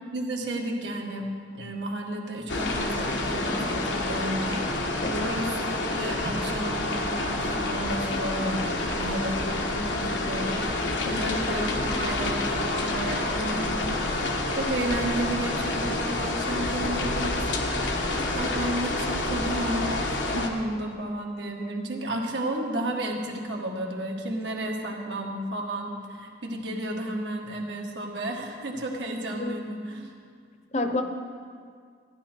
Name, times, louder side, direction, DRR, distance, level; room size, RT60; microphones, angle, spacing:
voice 1, 0.1-1.3 1.5-4.6 5.2-10.7 11.0-17.4 18.3-30.1, right 1 dB, 80° right, 0 dB, 1.5 m, -32 dB
sound 1, 2.5-20.5, left 2 dB, 90° left, 1.2 m, -28 dB
voice 2, 5.0-5.4 11.1-11.2 29.4-29.6 30.7-31.0, left 2 dB, 40° left, 6 dB, 0.8 m, -29 dB
15.0 x 10.0 x 4.5 m, 2.1 s
head